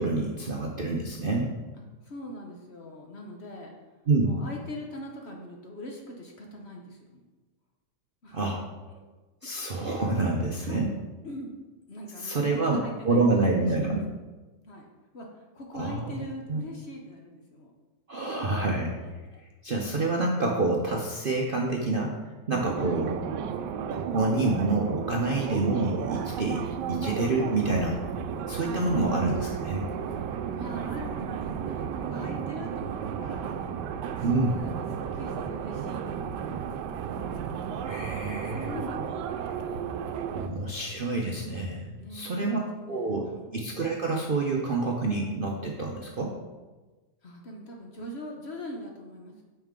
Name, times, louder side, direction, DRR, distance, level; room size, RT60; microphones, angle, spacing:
voice 1, 0.0-1.5 4.1-4.4 8.3-8.6 9.4-10.9 12.2-12.8 13.1-14.0 15.7-16.1 16.5-16.6 18.1-18.9 19.6-22.1 22.5-23.2 23.9-28.0 28.5-29.9 34.2-34.5 37.8-38.7 40.3-42.6 42.9-46.4, right 3 dB, 50° right, -1 dB, 0.6 m, -27 dB
voice 2, 2.0-3.7 4.2-7.2 8.2-8.4 10.6-10.9 11.2-11.5 11.9-14.0 14.6-14.9 15.1-17.7 19.0-19.4 19.7-19.8 22.8-23.0 30.6-33.6 34.2-36.7 38.5-39.0 40.3-40.5 42.0-43.5 47.2-49.4, left 1 dB, 45° left, 0 dB, 1.0 m, -42 dB
sound 1, 22.5-40.5, right 7 dB, 85° right, 1.2 m, -33 dB
8.9 x 5.6 x 3.7 m, 1.2 s
omnidirectional pair, 1.8 m